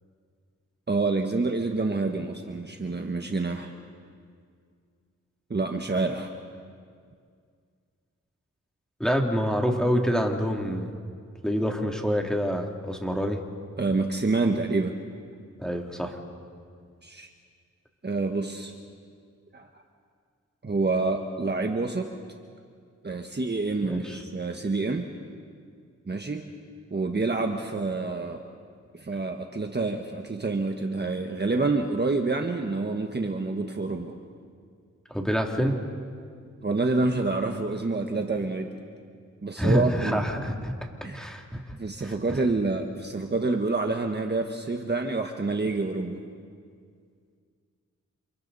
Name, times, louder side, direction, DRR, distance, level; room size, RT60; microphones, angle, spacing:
voice 1, 0.9-3.7 5.5-6.3 13.8-14.9 17.0-17.3 18.0-18.7 19.5-19.7 20.6-22.1 23.0-25.1 26.1-26.5 26.9-28.5 28.9-34.2 36.6-38.8 39.4-40.2 41.0-41.3 41.8-46.2, right 3 dB, 35° right, 3 dB, 1.4 m, -27 dB
voice 2, 9.0-10.9 11.4-13.4 15.6-16.2 23.9-24.2 35.1-35.7 39.6-40.7 41.1-41.8 42.0-42.4, equal, ahead, 1 dB, 2.9 m, -26 dB
29.5 x 27.5 x 4.2 m, 2.1 s
wide cardioid pair, 70°, 30 cm